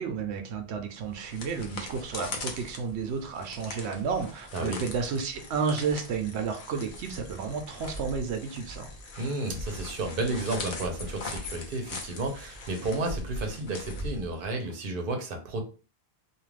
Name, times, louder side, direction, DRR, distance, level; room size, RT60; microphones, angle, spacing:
voice 1, 0.0-8.9, right 5 dB, 90° right, 5 dB, 0.9 m, -32 dB
sound 1, 1.0-14.7, left 2 dB, 55° left, 0.8 m, -40 dB
sound 2, 3.4-3.9 4.2-4.3 4.7-10.7 11.1-13.1, left 3 dB, 90° left, 1.1 m, -52 dB
voice 2, 9.2-15.6, right 2 dB, 60° right, 4 dB, 0.8 m, -32 dB
2.5 x 2.4 x 3.2 m, 0.35 s
omnidirectional pair, 1.1 m